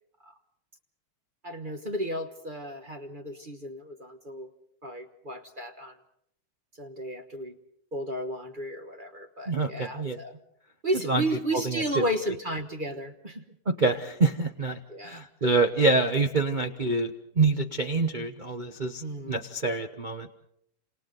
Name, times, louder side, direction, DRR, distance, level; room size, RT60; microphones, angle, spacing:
voice 1, 1.4-4.5 4.8-6.0 6.8-7.5 7.9-10.4 10.8-13.4 14.9-15.2 19.0-19.4, right 1 dB, 30° right, 6 dB, 1.1 m, -33 dB
voice 2, 9.5-10.2 11.1-11.2 11.5-11.8 13.7-20.3, right 3 dB, 75° right, 5 dB, 0.4 m, -26 dB
28.5 x 27.5 x 4.0 m, 0.74 s
omnidirectional pair, 2.4 m